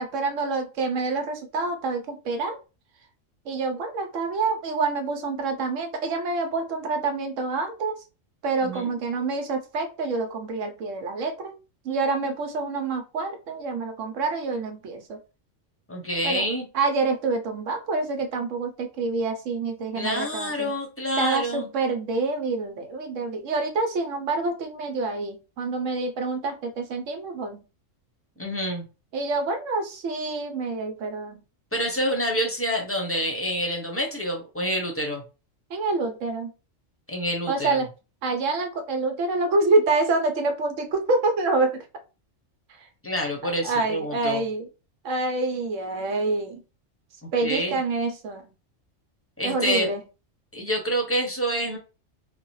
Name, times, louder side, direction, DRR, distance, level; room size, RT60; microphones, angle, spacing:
voice 1, 0.0-2.6 3.5-8.0 8.4-11.5 11.8-15.2 16.2-16.4 16.7-20.7 21.1-27.6 29.1-31.4 35.7-36.5 37.5-37.9 38.2-41.8 43.4-44.7 45.0-46.6 47.3-48.4 49.4-50.0, right 3 dB, 75° right, 5 dB, 1.1 m, -27 dB
voice 2, 15.9-16.7 20.0-21.7 28.4-28.9 31.7-35.2 37.1-37.8 43.0-44.4 47.2-47.8 49.4-49.9 50.5-51.8, equal, 15° left, 1 dB, 0.6 m, -27 dB
4.0 x 2.3 x 3.1 m, 0.31 s
omnidirectional pair, 1.3 m